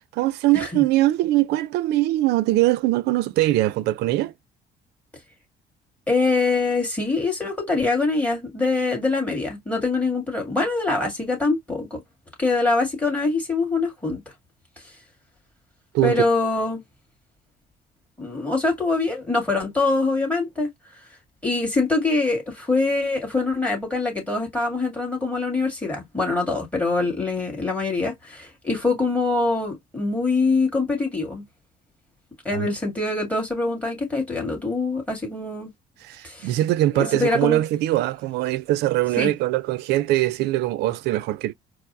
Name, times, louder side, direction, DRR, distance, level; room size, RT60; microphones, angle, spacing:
voice 1, 0.1-4.3 15.9-16.2 32.5-32.7 36.0-41.5, right 16 dB, 80° right, 0.4 m, -22 dB
voice 2, 6.1-12.0 12.4-14.2 14.8-14.9 16.0-16.8 18.2-20.7 21.4-31.4 32.5-35.7 36.2-36.6 36.9-37.6 39.2-39.3, left 3 dB, 10° left, 1.8 m, -24 dB
4.5 x 2.0 x 2.5 m
cardioid pair, 110°, 17 cm